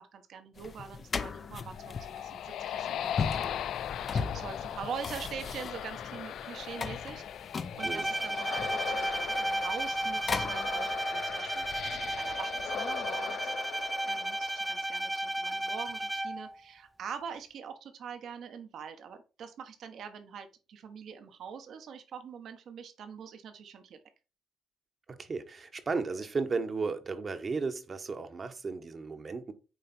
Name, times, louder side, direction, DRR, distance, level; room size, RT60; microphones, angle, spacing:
voice 1, 0.0-3.6 4.1-7.2 7.8-13.5 14.0-24.0, right 7 dB, 70° right, 1.3 m, -44 dB
sound 1, 0.6-11.0, left 5 dB, 45° left, 0.7 m, -38 dB
sound 2, 1.4-15.0, left 10 dB, 75° left, 0.3 m, -39 dB
Bowed string instrument, 7.8-16.5, right 1 dB, 10° right, 0.6 m, -33 dB
voice 2, 25.2-29.5, right 4 dB, 40° right, 1.1 m, -34 dB
9.3 x 3.4 x 4.4 m
cardioid pair, 90°, 0 cm